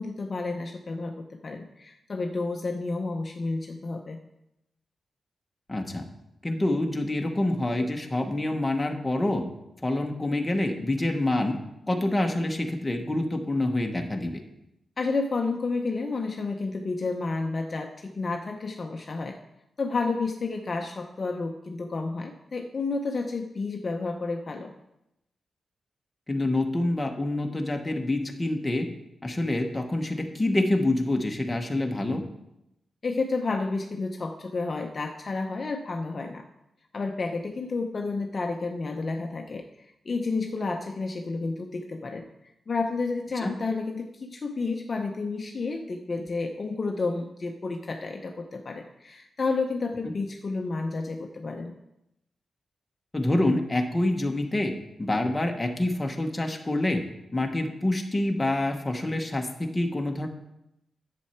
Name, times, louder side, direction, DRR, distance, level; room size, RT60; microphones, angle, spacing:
voice 1, 0.0-4.2 15.0-19.4 19.8-24.7 33.0-36.4 36.9-42.3 42.7-51.7, left 3 dB, 40° left, 3 dB, 0.7 m, -31 dB
voice 2, 5.7-6.1 6.4-9.4 9.8-11.6 11.9-14.4 26.3-28.9 29.2-32.2 43.4-43.5 53.1-54.7 55.0-57.0 57.3-60.3, left 1 dB, 15° left, 3 dB, 1.1 m, -26 dB
10.5 x 7.6 x 4.4 m, 0.87 s
wide cardioid pair, 135°, 0 cm